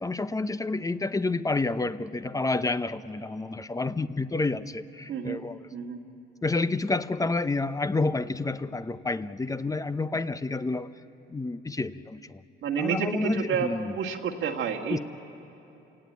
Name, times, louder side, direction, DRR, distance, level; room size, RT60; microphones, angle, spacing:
voice 1, 0.0-5.6 6.4-10.9 11.3-12.4 12.8-13.9 14.9-15.0, left 3 dB, 15° left, 13 dB, 0.7 m, -29 dB
voice 2, 5.1-5.4 5.7-6.0 12.6-15.0, right 6 dB, 75° right, 1 dB, 1.8 m, -29 dB
29.0 x 17.5 x 9.3 m, 2.9 s
cardioid pair, 90°, 20 cm